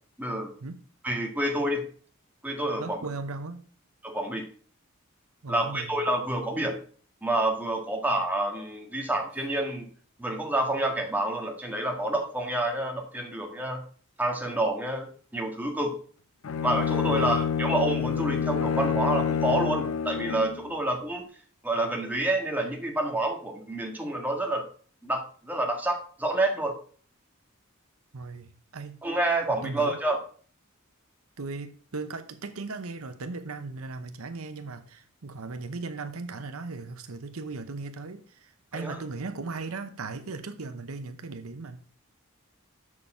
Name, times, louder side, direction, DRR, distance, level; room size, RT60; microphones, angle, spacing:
voice 1, 0.2-0.5 1.0-1.8 2.4-3.1 4.0-4.4 5.5-6.8 7.2-9.9 10.2-13.8 14.2-15.9 16.6-21.2 21.6-24.7 25.0-26.8 29.0-30.2 38.7-39.0, right 1 dB, 10° right, 1.6 m, -28 dB
voice 2, 2.8-3.6 5.4-6.1 17.1-17.5 28.1-29.0 29.6-30.0 31.4-41.8, right 3 dB, 85° right, 0.8 m, -37 dB
Bowed string instrument, 16.4-20.6, left 7 dB, 70° left, 0.5 m, -27 dB
7.0 x 6.6 x 4.9 m
head